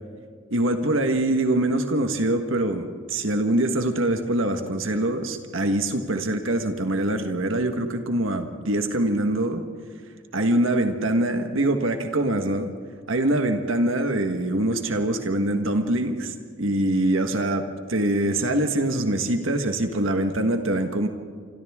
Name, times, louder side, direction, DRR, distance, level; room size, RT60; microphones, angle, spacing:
voice 1, 0.5-9.6 10.3-12.7 13.1-17.6 17.9-21.1, right 1 dB, 70° right, 6 dB, 1.5 m, -24 dB
27.5 x 26.5 x 3.7 m, 2.1 s
head